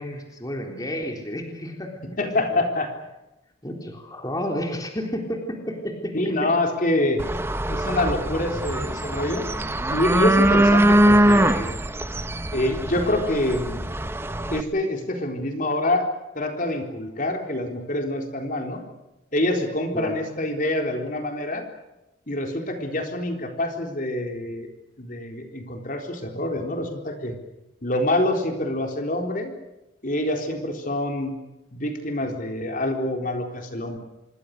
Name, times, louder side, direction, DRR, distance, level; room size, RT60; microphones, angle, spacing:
voice 1, 0.0-2.0 2.5-2.6 3.6-6.5 19.9-20.2, equal, 20° left, 2 dB, 3.7 m, -31 dB
voice 2, 2.2-2.9 6.1-7.2 7.7-9.4 9.9-11.7 12.5-13.8 14.5-16.1 16.4-18.8 19.3-21.6 22.3-24.7 25.0-27.4 27.8-29.5 30.0-31.3 31.7-34.0, left 1 dB, 40° left, 3 dB, 4.0 m, -26 dB
sound 1, 7.2-14.6, right 1 dB, 10° right, 0.9 m, -22 dB
26.5 x 24.0 x 6.7 m, 0.93 s
head